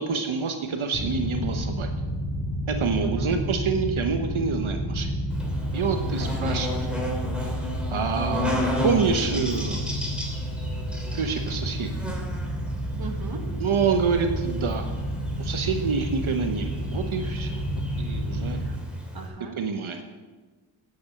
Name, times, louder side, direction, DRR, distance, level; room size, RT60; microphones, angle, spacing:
voice 1, 0.0-1.9 2.7-5.1 5.7-6.7 7.9-9.9 11.1-11.9 13.6-14.9 15.4-17.7 18.0-18.6 19.6-20.0, right 5 dB, 75° right, 5 dB, 1.2 m, -27 dB
sound 1, 0.9-18.7, equal, 40° left, 5.1 m, -30 dB
voice 2, 3.0-3.4 6.2-6.8 13.0-13.5 18.4-18.8 19.1-19.6, right 4 dB, 50° right, 4 dB, 1.9 m, -39 dB
Buzz, 5.3-19.3, equal, ahead, 3.0 m, -33 dB
10.0 x 8.1 x 8.4 m, 1.3 s
wide cardioid pair, 95°, 48 cm